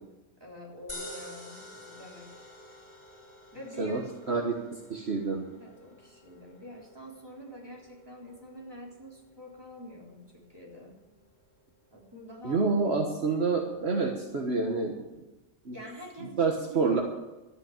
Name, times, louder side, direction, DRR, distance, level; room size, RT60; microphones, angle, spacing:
voice 1, 0.4-2.3 3.5-4.5 5.5-11.0 11.9-12.6 15.7-17.0, equal, 20° right, -3 dB, 3.8 m, -46 dB
sound 1, 0.9-13.2, left 1 dB, 25° left, 3.1 m, -50 dB
voice 2, 4.9-5.5 12.4-15.0 15.7-15.8 16.2-17.0, right 4 dB, 60° right, 1 dB, 1.6 m, -27 dB
13.0 x 9.1 x 8.7 m, 1.1 s
omnidirectional pair, 1.3 m